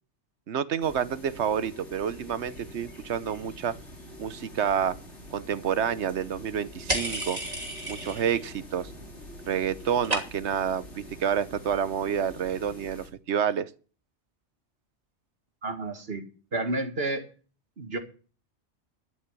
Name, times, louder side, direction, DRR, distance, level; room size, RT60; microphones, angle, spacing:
voice 1, 0.5-3.7 4.2-4.9 5.3-7.4 7.9-8.9 9.5-13.7, right 8 dB, 75° right, 1.2 m, -29 dB
sound 1, 0.8-13.1, left 1 dB, 85° left, 4.0 m, -45 dB
sound 2, 6.9-8.5 8.8-9.3 9.6-10.6, right 1 dB, 35° right, 3.0 m, -32 dB
voice 2, 15.6-16.2 16.5-17.3 17.8-18.0, right 2 dB, 60° right, 2.1 m, -30 dB
12.5 x 6.4 x 8.2 m
omnidirectional pair, 1.2 m